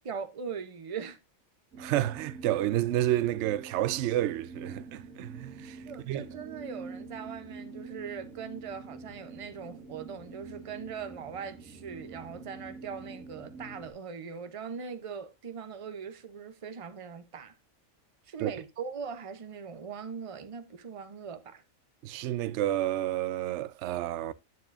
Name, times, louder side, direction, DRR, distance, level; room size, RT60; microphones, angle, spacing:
voice 1, 0.0-1.2 5.9-17.5 18.3-21.6, right 6 dB, 30° right, 0.6 m, -40 dB
sound 1, 1.7-13.9, right 4 dB, 90° right, 2.2 m, -46 dB
voice 2, 1.8-5.8 6.1-6.2 18.4-18.5 22.0-24.3, right 13 dB, 65° right, 0.8 m, -30 dB
9.4 x 7.3 x 2.5 m
omnidirectional pair, 1.4 m